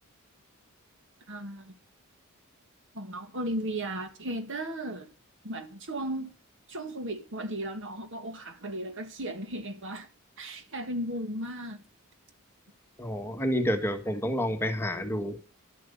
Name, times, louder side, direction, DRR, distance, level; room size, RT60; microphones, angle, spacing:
voice 1, 1.3-1.7 2.9-5.1 5.4-6.3 6.7-10.1 10.4-11.8, right 1 dB, 60° right, 2.0 m, -35 dB
voice 2, 13.0-15.4, equal, 10° left, 1.5 m, -29 dB
12.5 x 7.8 x 7.0 m
head